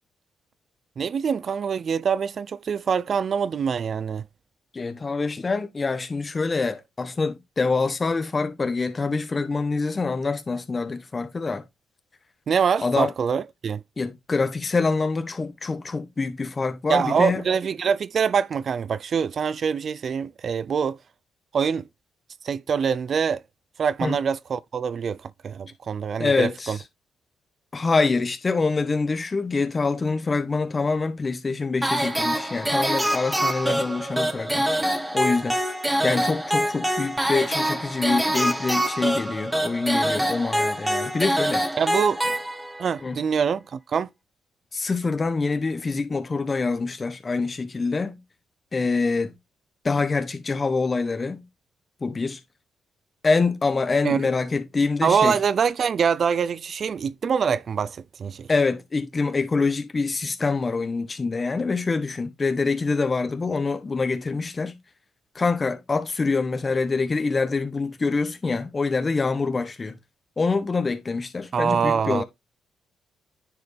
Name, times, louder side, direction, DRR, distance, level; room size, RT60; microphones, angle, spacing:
voice 1, 1.0-4.2 12.5-13.8 16.9-21.0 21.5-21.9 22.4-23.4 23.8-25.2 25.4-26.8 41.8-42.2 42.8-44.1 54.0-54.2 55.0-58.5 71.5-72.2, right 6 dB, 55° right, 0.4 m, -24 dB
voice 2, 4.7-11.6 12.8-13.1 14.0-17.4 24.0-24.2 26.2-26.8 27.7-34.7 35.1-35.6 36.0-41.6 43.0-43.2 44.7-48.2 48.7-49.3 49.8-51.4 52.0-52.4 53.2-55.4 58.5-64.8 65.3-70.0 70.4-72.2, left 4 dB, 35° left, 1.4 m, -25 dB
sound 1, 31.8-42.9, equal, 10° right, 1.4 m, -25 dB
9.7 x 4.6 x 3.3 m
supercardioid pair, 55°, 0 cm